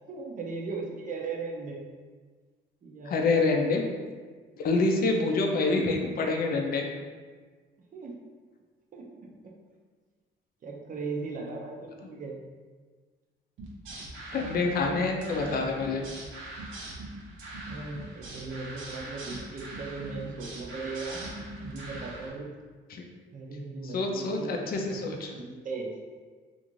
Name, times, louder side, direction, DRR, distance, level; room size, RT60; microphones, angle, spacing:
voice 1, 0.1-1.8 2.8-3.3 7.9-8.1 8.9-9.5 10.6-12.4 14.3-15.0 17.7-21.3 21.6-22.5 23.3-24.6 24.9-25.9, right 4 dB, 40° right, 0 dB, 0.6 m, -38 dB
voice 2, 3.1-3.9 4.6-6.9 14.3-16.0 22.9-23.0 23.8-25.3, left 3 dB, 50° left, 2 dB, 0.4 m, -27 dB
sound 1, 13.6-22.3, right 1 dB, 85° right, 0.7 m, -41 dB
2.5 x 2.5 x 3.0 m, 1.5 s
cardioid pair, 90°, 20 cm